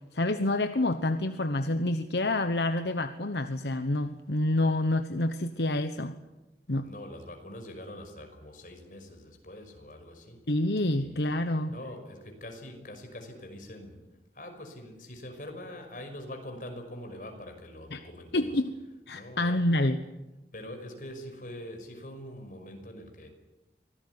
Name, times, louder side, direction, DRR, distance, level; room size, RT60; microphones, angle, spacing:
voice 1, 0.1-6.2 6.7-6.9 10.5-11.7 17.9-18.0 18.3-18.7 19.1-20.1, left 1 dB, 75° left, 9 dB, 1.1 m, -28 dB
voice 2, 6.8-10.5 10.9-11.3 11.7-14.0 14.3-18.6 19.1-19.8 20.5-23.3, left 1 dB, 50° left, 5 dB, 5.7 m, -44 dB
25.0 x 18.0 x 9.7 m, 1.1 s
head